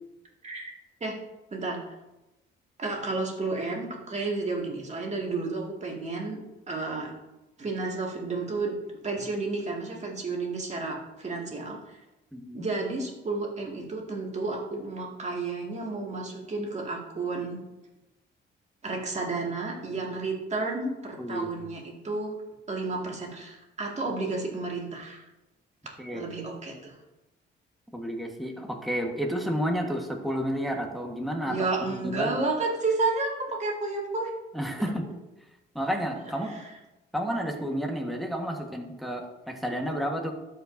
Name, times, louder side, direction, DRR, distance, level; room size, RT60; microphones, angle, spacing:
voice 1, 2.8-6.4 6.7-7.1 7.6-8.7 9.0-12.0 12.5-17.6 18.8-22.4 22.7-25.2 26.1-27.0 31.4-34.3 36.4-36.7, right 3 dB, 35° right, -1 dB, 2.1 m, -31 dB
voice 2, 12.3-12.7 21.2-21.7 26.0-26.3 27.9-32.4 34.5-35.1 35.7-36.6 37.1-40.3, equal, ahead, 1 dB, 1.4 m, -31 dB
13.0 x 5.2 x 2.7 m, 1.0 s
cardioid pair, 90°, 20 cm